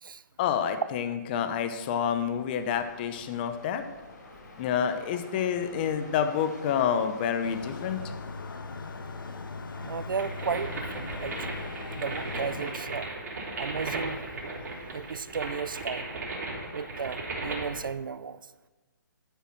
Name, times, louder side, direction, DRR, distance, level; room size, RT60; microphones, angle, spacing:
voice 1, 0.4-3.8 4.6-8.0, left 8 dB, 30° left, 9 dB, 0.8 m, -28 dB
sound 1, 2.1-10.2, left 2 dB, 65° left, 4.3 m, -50 dB
sound 2, 7.4-12.7, left 4 dB, 80° left, 1.3 m, -39 dB
voice 2, 9.8-11.6 11.9-13.1 13.6-14.2 14.9-16.0 16.7-18.4, right 6 dB, 80° right, 16 dB, 0.7 m, -34 dB
sound 3, 10.1-17.8, right 2 dB, 50° right, 3.9 m, -36 dB
12.5 x 6.8 x 6.1 m, 1.2 s
hypercardioid pair, 160°, 11 cm